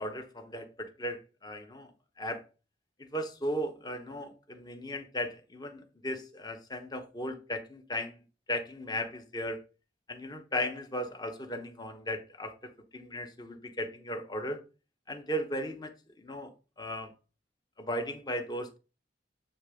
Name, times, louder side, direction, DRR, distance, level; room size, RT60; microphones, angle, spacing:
voice 1, 0.0-1.9 2.2-2.4 3.0-8.2 8.5-9.6 10.1-14.6 15.1-15.9 16.2-16.5 16.8-17.1 17.8-18.8, equal, 25° left, 0.9 m, -36 dB
8.7 x 3.3 x 5.0 m
head